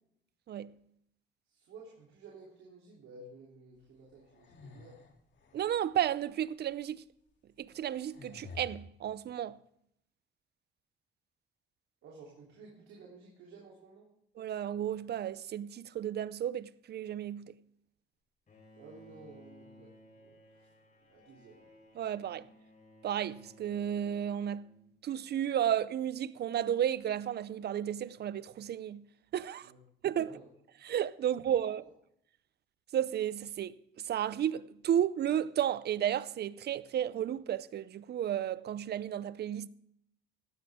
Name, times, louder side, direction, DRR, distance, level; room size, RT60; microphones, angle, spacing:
voice 1, 1.5-5.0 12.0-14.1 18.7-20.7 21.1-21.6 29.6-29.8 30.2-30.5 31.8-31.9, right 3 dB, 80° right, 3.4 m, -54 dB
sound 1, 4.1-6.0 6.7-6.8 7.6-8.7, left 4 dB, 65° left, 2.8 m, -51 dB
voice 2, 5.5-7.0 7.6-9.6 14.4-17.5 22.0-22.4 23.0-24.7 25.0-29.0 29.3-29.7 30.0-30.3 30.8-31.8 32.9-33.7 34.1-39.7, right 10 dB, 55° right, 0.6 m, -33 dB
Bowed string instrument, 18.5-25.2, left 1 dB, 40° left, 3.9 m, -58 dB
16.0 x 12.0 x 3.6 m
cardioid pair, 90°, 20 cm